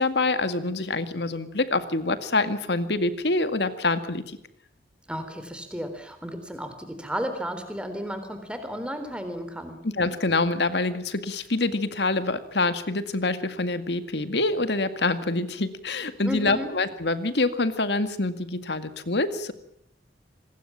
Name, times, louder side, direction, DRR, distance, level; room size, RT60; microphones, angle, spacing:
voice 1, 0.0-4.4 9.8-19.5, left 2 dB, 75° left, 10 dB, 2.0 m, -26 dB
voice 2, 5.1-9.8 16.2-16.7, equal, 5° right, 8 dB, 3.8 m, -33 dB
26.5 x 20.0 x 7.4 m, 0.70 s
head